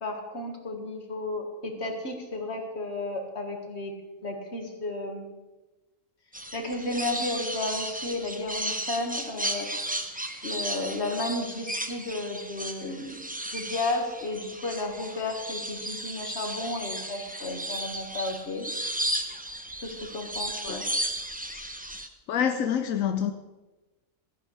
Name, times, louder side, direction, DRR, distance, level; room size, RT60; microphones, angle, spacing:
voice 1, 0.0-5.3 6.5-9.7 10.1-10.2 10.4-13.3 13.5-18.7 19.8-20.9, left 2 dB, 55° left, 3 dB, 2.0 m, -33 dB
sound 1, 6.3-22.1, right 1 dB, 10° right, 0.6 m, -34 dB
voice 2, 22.3-23.3, left 8 dB, 90° left, 8 dB, 1.1 m, -27 dB
16.0 x 14.0 x 3.3 m, 1.2 s
omnidirectional pair, 1.3 m